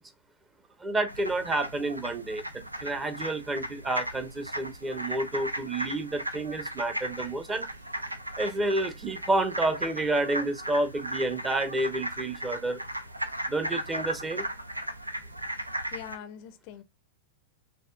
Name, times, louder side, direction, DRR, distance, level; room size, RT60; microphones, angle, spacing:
voice 1, 0.8-7.7 8.4-12.8 13.5-14.5, right 2 dB, 20° right, 0.7 m, -30 dB
sound 1, 1.1-16.2, right 1 dB, 85° right, 0.5 m, -36 dB
voice 2, 15.9-16.8, left 10 dB, 45° left, 0.4 m, -42 dB
6.4 x 2.4 x 2.2 m
figure-of-eight pair, 90°, 0 cm